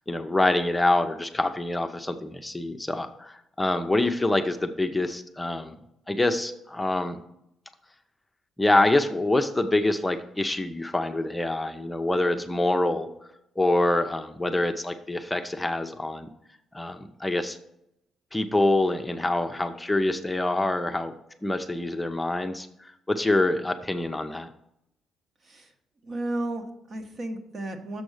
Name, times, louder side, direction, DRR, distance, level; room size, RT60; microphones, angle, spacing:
voice 1, 0.1-5.8 6.1-7.2 8.6-13.1 13.6-16.3 16.7-17.6 18.3-21.1 21.4-24.5, left 2 dB, 10° left, 7 dB, 0.6 m, -25 dB
voice 2, 26.0-28.0, right 1 dB, 45° right, 5 dB, 1.3 m, -33 dB
7.0 x 5.2 x 6.5 m, 0.80 s
cardioid pair, 90°, 0 cm